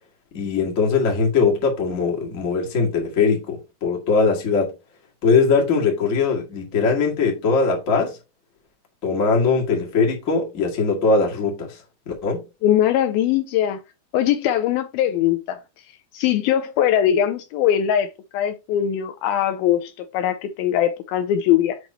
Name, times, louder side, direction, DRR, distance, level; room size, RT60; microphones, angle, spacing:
voice 1, 0.3-4.7 5.2-8.2 9.0-11.7 12.1-12.4, left 4 dB, 30° left, 1.5 m, -20 dB
voice 2, 12.6-13.8 14.1-15.6 16.1-21.8, left 10 dB, 80° left, 2.3 m, -21 dB
7.9 x 3.1 x 4.1 m
omnidirectional pair, 4.5 m